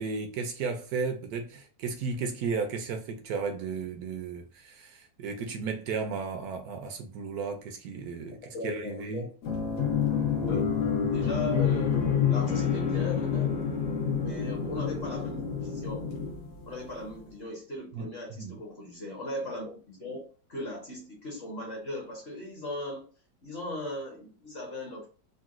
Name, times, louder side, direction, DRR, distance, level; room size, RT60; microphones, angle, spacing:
voice 1, 0.0-9.3 17.9-18.6, right 5 dB, 70° right, 1.0 m, -34 dB
voice 2, 8.5-9.3 10.4-10.8 11.1-13.6 14.1-16.1 16.6-23.1 23.4-25.1, left 1 dB, 45° left, 1.0 m, -38 dB
sound 1, 9.4-17.0, left 7 dB, 75° left, 1.4 m, -28 dB
3.9 x 2.1 x 2.4 m
omnidirectional pair, 1.8 m